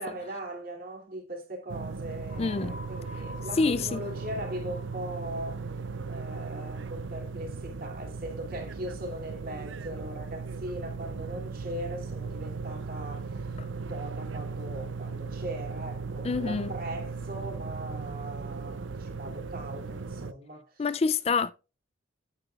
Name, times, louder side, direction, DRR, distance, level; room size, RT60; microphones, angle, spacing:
voice 1, 0.0-5.8 6.1-20.9, right 1 dB, 50° right, 2.9 m, -40 dB
sound 1, 1.7-20.3, right 4 dB, 70° right, 0.6 m, -37 dB
sound 2, 2.3-5.9, left 2 dB, 75° left, 2.7 m, -48 dB
voice 2, 2.4-2.7 3.6-4.0 13.6-13.7 16.2-16.7 20.8-21.5, left 4 dB, 30° left, 0.3 m, -26 dB
9.1 x 9.0 x 2.4 m
head